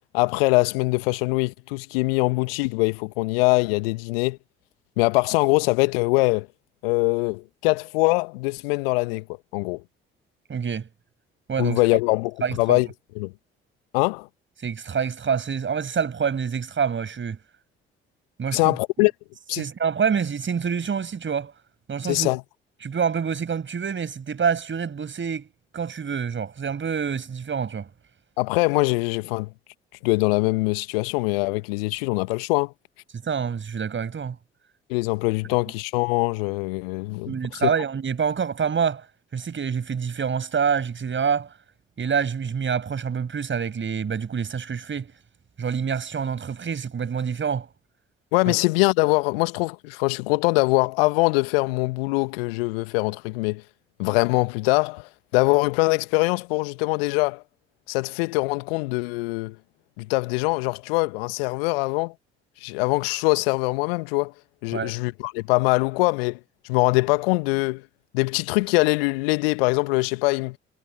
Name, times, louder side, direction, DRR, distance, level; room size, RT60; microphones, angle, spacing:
voice 1, 0.1-4.4 5.0-6.5 6.8-9.2 9.5-9.8 11.6-12.9 13.1-13.3 13.9-14.3 18.5-19.1 19.5-19.6 22.1-22.4 28.4-29.5 30.0-32.7 34.9-37.7 48.3-53.6 54.0-57.4 57.9-59.5 60.0-62.1 62.6-64.3 64.6-66.4 66.7-67.8 68.1-70.6, left 26 dB, 70° left, 1.6 m, -23 dB
voice 2, 10.5-10.9 11.5-11.8 12.4-12.8 14.6-17.4 18.4-18.8 19.6-21.5 21.9-22.3 22.8-25.5 25.7-27.9 33.2-34.4 37.3-39.0 39.3-41.5 42.0-45.1 45.6-47.7 64.7-65.0, right 6 dB, 40° right, 7.4 m, -26 dB
figure-of-eight pair, 45°, 30 cm